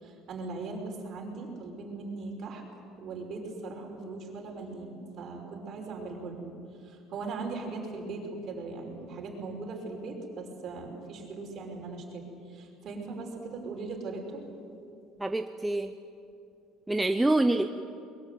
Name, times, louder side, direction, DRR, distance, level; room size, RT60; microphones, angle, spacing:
voice 1, 0.0-6.5 6.9-12.3 12.5-14.4, right 3 dB, 45° right, 1 dB, 5.5 m, -39 dB
voice 2, 15.2-15.9 16.9-17.7, right 2 dB, 5° right, 7 dB, 0.7 m, -26 dB
22.5 x 22.0 x 9.3 m, 2.6 s
cardioid pair, 150°, 0 cm